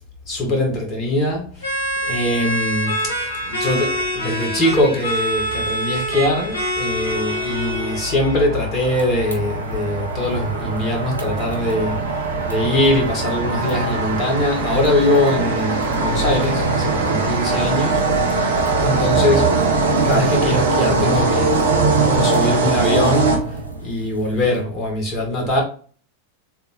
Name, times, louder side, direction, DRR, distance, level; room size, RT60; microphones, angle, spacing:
voice 1, 0.3-12.0 12.4-18.1 18.8-19.6 20.0-25.6, left 1 dB, 30° left, 1.7 m, -22 dB
sound 1, 1.6-8.4, equal, 70° left, 1.5 m, -25 dB
sound 2, 7.1-23.9, right 3 dB, 65° right, 0.9 m, -21 dB
sound 3, 8.8-24.6, right 3 dB, 90° left, 0.6 m, -36 dB
3.5 x 3.4 x 3.1 m
figure-of-eight pair, 90°, 0 cm